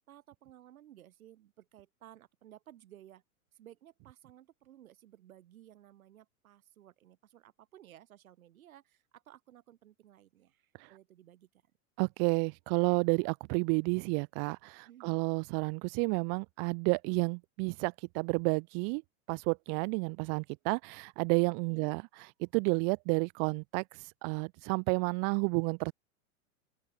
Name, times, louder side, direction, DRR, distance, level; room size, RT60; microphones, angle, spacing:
voice 1, 0.0-3.2 3.5-11.5 14.8-15.2 21.7-22.0, right 12 dB, 75° right, 2.6 m, -57 dB
voice 2, 12.0-19.0 19.3-22.0 22.4-23.8 24.2-25.9, right 40 dB or more, 45° right, 1.1 m, -31 dB
open air
hypercardioid pair, 115°, 42 cm